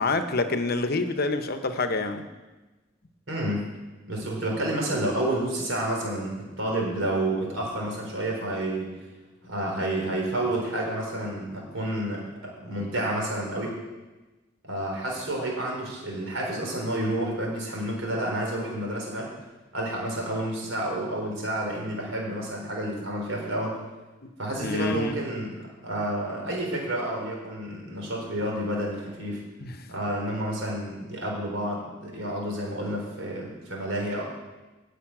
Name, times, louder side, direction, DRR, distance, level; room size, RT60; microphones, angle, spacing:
voice 1, 0.0-2.3 24.2-24.3 24.6-25.1 29.6-29.8, left 3 dB, 55° left, 9 dB, 0.8 m, -27 dB
voice 2, 3.3-3.6 4.1-8.9 9.4-13.8 14.6-19.3 19.7-23.8 24.4-25.5 25.8-29.4 29.9-34.3, right 1 dB, 80° right, -1 dB, 3.9 m, -30 dB
10.5 x 6.7 x 8.8 m, 1.2 s
head